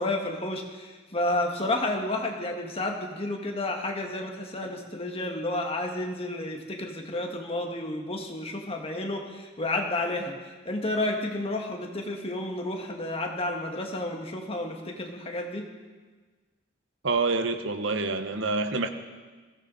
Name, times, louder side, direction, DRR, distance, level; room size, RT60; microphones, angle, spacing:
voice 1, 0.0-10.4 10.7-15.6, left 1 dB, 30° left, 2 dB, 1.8 m, -31 dB
voice 2, 17.0-18.9, right 3 dB, 70° right, 8 dB, 1.1 m, -27 dB
21.0 x 16.5 x 4.1 m, 1.4 s
head